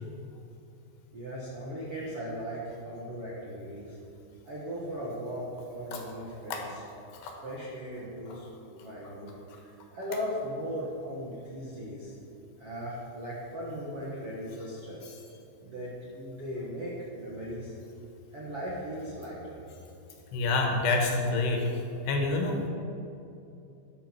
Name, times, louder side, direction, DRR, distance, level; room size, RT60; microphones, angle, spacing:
voice 1, 1.1-4.0 4.4-6.8 7.4-12.1 12.6-15.1 15.6-17.7 18.3-19.6, equal, 60° right, -6 dB, 1.5 m, -38 dB
voice 2, 20.3-22.7, left 3 dB, 70° left, 1 dB, 3.4 m, -27 dB
13.5 x 10.0 x 4.6 m, 2.7 s
omnidirectional pair, 5.3 m